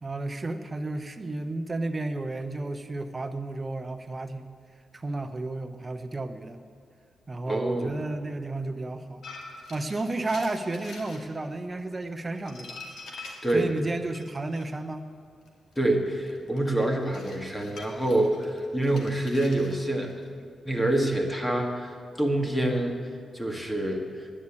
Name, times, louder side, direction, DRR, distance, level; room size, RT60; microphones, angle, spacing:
voice 1, 0.0-4.5 4.9-6.6 7.3-9.3 9.7-12.9 13.5-15.1, right 2 dB, 25° right, 8 dB, 0.8 m, -32 dB
voice 2, 7.5-7.9 13.4-13.7 15.7-20.1 20.6-22.9 23.3-24.0, right 1 dB, 10° left, 2 dB, 1.6 m, -26 dB
sound 1, 9.2-11.2 11.8-14.7 15.4-20.3, left 3 dB, 80° left, 2.0 m, -45 dB
10.0 x 9.8 x 8.5 m, 2.2 s
cardioid pair, 110°, 0 cm